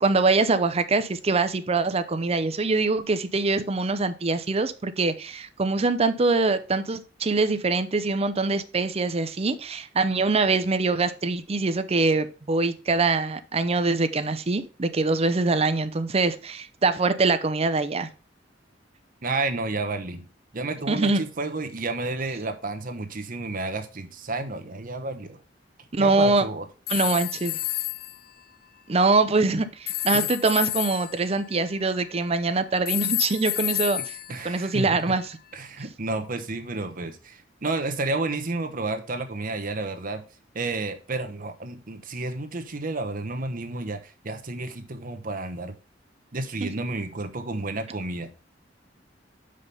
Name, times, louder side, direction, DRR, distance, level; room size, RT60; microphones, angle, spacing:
voice 1, 0.0-18.1 20.9-21.2 25.9-26.4 26.9-27.5 28.9-34.0 34.4-35.2 46.6-46.7, right 3 dB, 35° right, 0.6 m, -23 dB
voice 2, 19.2-20.2 20.5-25.4 26.0-26.7 34.3-35.0 35.5-40.2 40.5-45.7 46.3-48.3, right 2 dB, 50° right, 0.9 m, -31 dB
sound 1, 26.9-28.2 29.9-32.3 32.8-35.2, left 15 dB, 55° left, 0.4 m, -30 dB
5.6 x 5.0 x 5.3 m
head